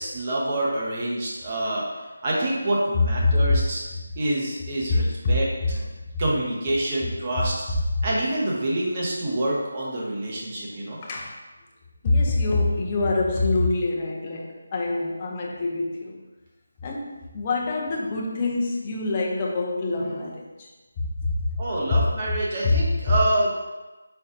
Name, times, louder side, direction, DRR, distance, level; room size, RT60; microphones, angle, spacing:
voice 1, 0.0-3.8 4.2-5.5 6.2-7.7 8.0-11.0 21.6-23.5, right 1 dB, 30° right, -5 dB, 1.0 m, -27 dB
voice 2, 4.9-5.3 5.7-5.8 10.9-11.4 12.0-16.2 16.8-20.7 21.0-21.6 22.6-22.8, left 2 dB, 25° left, -1 dB, 0.6 m, -25 dB
4.3 x 4.0 x 2.6 m, 1.2 s
figure-of-eight pair, 160°, 0 cm